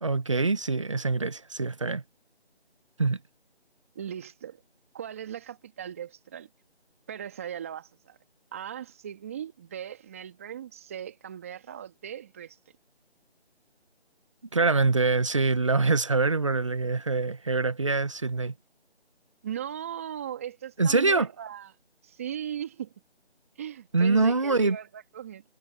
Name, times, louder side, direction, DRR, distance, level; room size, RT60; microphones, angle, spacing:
voice 1, 0.0-2.0 3.0-3.2 14.5-18.5 20.8-21.3 23.9-24.8, right 3 dB, 30° right, 1.1 m, -24 dB
voice 2, 4.0-4.6 4.9-6.5 7.1-8.2 8.5-12.6 19.4-21.7 22.0-22.9 23.6-25.4, right 9 dB, 15° right, 2.1 m, -38 dB
figure-of-eight pair, 170°, 32 cm